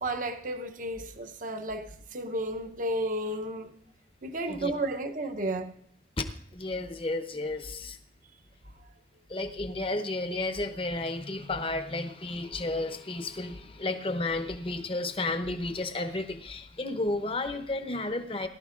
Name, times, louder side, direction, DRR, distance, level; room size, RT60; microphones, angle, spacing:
voice 1, 0.0-3.7 4.2-5.7, right 1 dB, 45° right, 0.8 m, -32 dB
voice 2, 6.5-8.0 9.3-18.5, left 2 dB, 30° left, 0.8 m, -32 dB
19.5 x 12.0 x 2.5 m
head